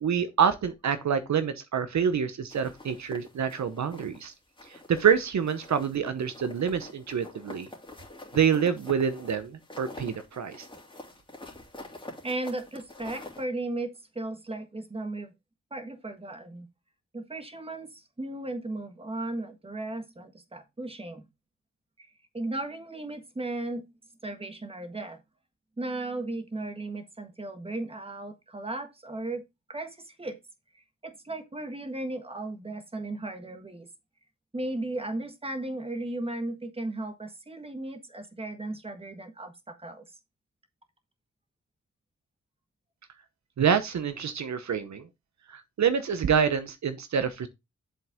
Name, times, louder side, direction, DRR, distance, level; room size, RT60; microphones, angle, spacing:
voice 1, 0.0-4.3 4.7-7.7 8.3-10.7 43.6-45.1 45.5-47.5, right 7 dB, 70° right, 0.9 m, -27 dB
sound 1, 2.5-4.2 4.6-5.2 5.5-13.4, left 1 dB, 15° left, 2.7 m, -46 dB
voice 2, 12.2-15.3 15.7-16.7 17.1-21.3 22.0-23.8 24.2-25.2 25.8-29.4 29.7-30.4 30.7-33.9 34.5-40.2, right 2 dB, 20° right, 1.4 m, -36 dB
7.5 x 5.6 x 3.6 m
wide cardioid pair, 95°, 29 cm